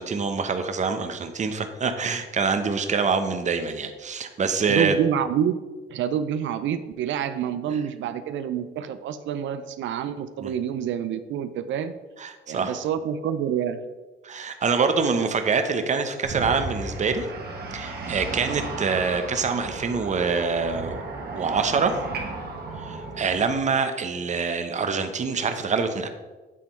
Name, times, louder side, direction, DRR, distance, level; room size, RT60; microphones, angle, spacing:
voice 1, 0.0-4.9 10.4-10.5 12.2-12.8 14.2-17.3 17.7-21.0 21.3-22.0 22.8-26.1, right 5 dB, 35° right, 8 dB, 0.7 m, -25 dB
voice 2, 4.7-5.5 5.9-11.9 12.5-13.8, right 9 dB, 75° right, 11 dB, 0.4 m, -27 dB
sound 1, 16.2-23.5, right 3 dB, 55° right, 1.4 m, -34 dB
8.5 x 3.5 x 4.2 m, 1.2 s
cardioid pair, 90°, 20 cm